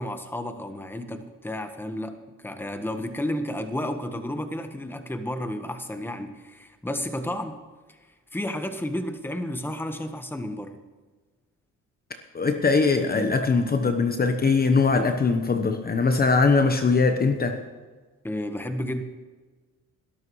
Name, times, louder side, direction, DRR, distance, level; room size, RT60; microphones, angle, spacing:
voice 1, 0.0-7.6 7.9-8.0 8.3-10.8 18.2-19.0, left 1 dB, 5° left, 7 dB, 1.3 m, -32 dB
voice 2, 12.3-17.6, left 4 dB, 30° left, 6 dB, 1.0 m, -21 dB
21.0 x 12.5 x 3.2 m, 1.3 s
cardioid pair, 90°, 30 cm